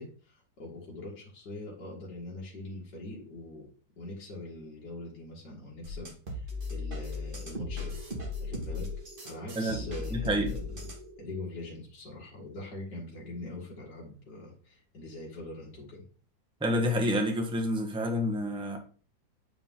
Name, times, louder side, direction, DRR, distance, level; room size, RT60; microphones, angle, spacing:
voice 1, 0.0-3.7 4.0-8.0 8.4-8.9 9.2-10.9 11.2-16.0, left 2 dB, 60° left, 2.4 m, -43 dB
sound 1, 5.8-11.1, left 3 dB, 30° right, 1.9 m, -37 dB
sound 2, 6.5-11.5, right 3 dB, 50° right, 2.1 m, -51 dB
voice 2, 10.1-10.5 16.6-18.8, equal, 5° right, 0.8 m, -28 dB
9.1 x 4.8 x 3.7 m
omnidirectional pair, 2.0 m